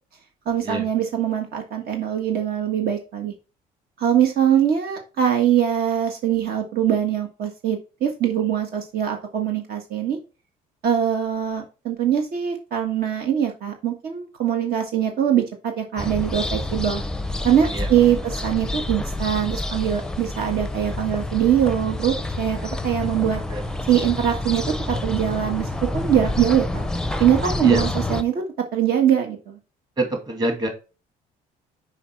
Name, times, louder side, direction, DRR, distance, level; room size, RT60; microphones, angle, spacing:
voice 1, 0.4-3.3 4.0-10.2 10.8-17.0 17.4-23.4 23.9-26.8 27.2-28.4 28.7-29.6, right 9 dB, 65° right, 3 dB, 1.5 m, -22 dB
sound 1, 16.0-28.2, left 2 dB, 5° left, 0.6 m, -28 dB
voice 2, 23.2-23.7 27.6-27.8 30.0-30.7, right 1 dB, 25° right, 3 dB, 2.3 m, -26 dB
5.8 x 5.2 x 4.5 m, 0.32 s
cardioid pair, 110°, 17 cm